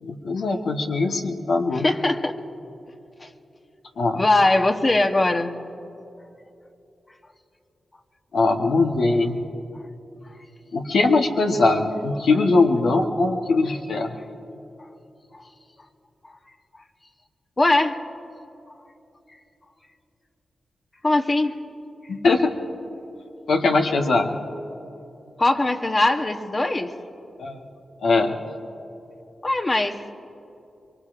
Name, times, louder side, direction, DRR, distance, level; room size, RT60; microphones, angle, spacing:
voice 1, 0.0-1.9 4.0-4.2 8.3-9.4 10.7-14.2 22.1-22.5 23.5-24.4 27.4-27.6 28.0-28.4, left 3 dB, 80° left, 2 dB, 1.1 m, -21 dB
voice 2, 1.7-2.3 3.2-3.3 4.2-5.5 17.6-18.0 21.0-21.6 25.4-26.9 29.4-30.0, left 2 dB, 35° left, 5 dB, 1.0 m, -21 dB
24.0 x 22.5 x 2.5 m, 2.9 s
cardioid pair, 50°, 0 cm